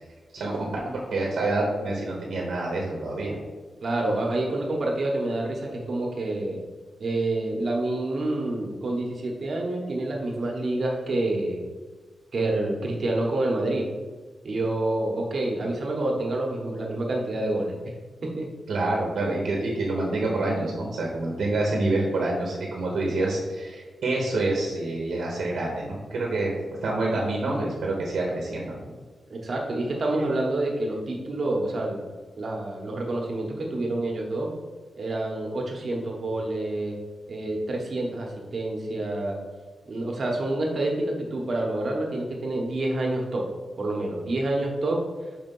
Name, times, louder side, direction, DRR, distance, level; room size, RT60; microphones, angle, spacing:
voice 1, 0.3-3.4 18.7-26.6 26.8-28.9, right 2 dB, 85° right, -2 dB, 1.0 m, -27 dB
voice 2, 3.8-6.6 7.0-11.7 12.3-13.9 14.4-17.7 18.2-18.5 29.3-32.0 32.4-34.5 35.0-37.0 37.3-39.4 39.9-43.4 43.8-45.0, right 2 dB, 50° right, 0 dB, 1.1 m, -28 dB
5.0 x 3.6 x 5.4 m, 1.4 s
wide cardioid pair, 150°, 0 cm